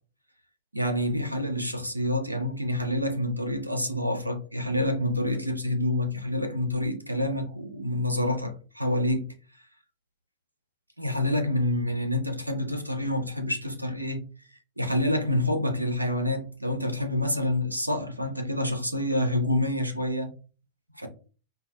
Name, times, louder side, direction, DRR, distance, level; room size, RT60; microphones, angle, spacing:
voice 1, 0.7-9.3 11.0-14.2 14.8-20.3 20.9-21.1, left 1 dB, 85° right, 0.5 m, -27 dB
3.9 x 2.0 x 2.3 m
figure-of-eight pair, 90°, 0 cm